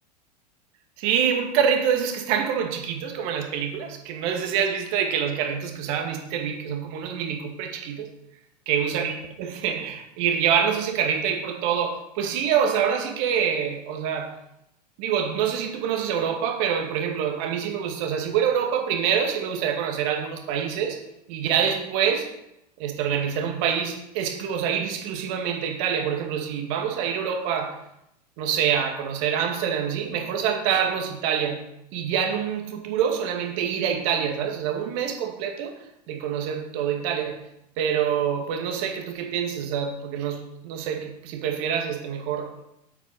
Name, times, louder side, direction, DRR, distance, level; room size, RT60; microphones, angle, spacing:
voice 1, 1.0-8.1 8.7-14.3 15.0-21.0 21.3-22.3 22.8-27.8 28.4-31.6 31.9-35.7 36.1-37.4 37.8-42.5, right 8 dB, 50° right, 4 dB, 2.1 m, -26 dB
8.2 x 8.1 x 5.7 m, 0.81 s
figure-of-eight pair, 85°, 21 cm